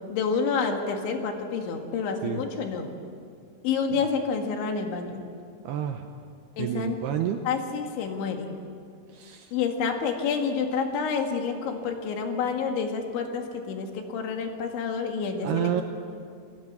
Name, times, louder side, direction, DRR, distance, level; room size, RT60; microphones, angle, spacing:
voice 1, 0.1-3.0 3.6-5.2 6.6-7.0 7.5-8.6 9.5-15.8, left 5 dB, 70° left, 4 dB, 4.2 m, -28 dB
voice 2, 5.6-6.1 6.6-7.4 9.1-9.5 15.4-15.8, right 11 dB, 80° right, 6 dB, 2.4 m, -29 dB
28.5 x 17.0 x 8.2 m, 2.4 s
omnidirectional pair, 5.6 m